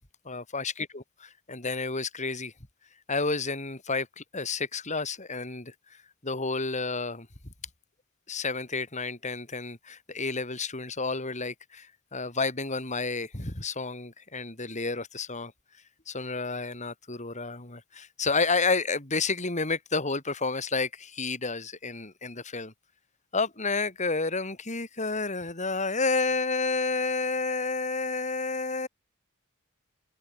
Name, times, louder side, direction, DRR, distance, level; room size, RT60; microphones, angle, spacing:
voice 1, 0.3-2.5 3.1-5.7 6.2-7.3 8.3-15.5 16.1-22.7 23.3-28.9, left 3 dB, 35° left, 4.0 m, -30 dB
open air
head